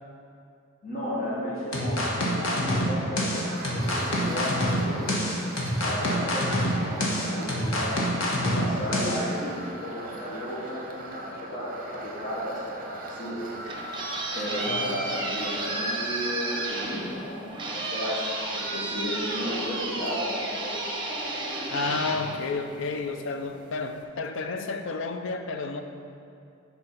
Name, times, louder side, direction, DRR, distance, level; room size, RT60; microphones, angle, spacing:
voice 1, 0.8-5.2 5.8-13.4 14.3-18.3 18.5-20.8, equal, 40° left, -7 dB, 1.2 m, -34 dB
sound 1, 1.7-9.2, equal, 85° left, 1.3 m, -26 dB
sound 2, 3.3-16.7, right 2 dB, 45° right, 0.7 m, -41 dB
sound 3, 13.4-23.1, right 2 dB, 25° right, 1.0 m, -32 dB
voice 2, 14.7-15.0 21.7-25.8, left 3 dB, 65° left, 6 dB, 0.5 m, -31 dB
6.9 x 4.4 x 5.2 m, 2.6 s
head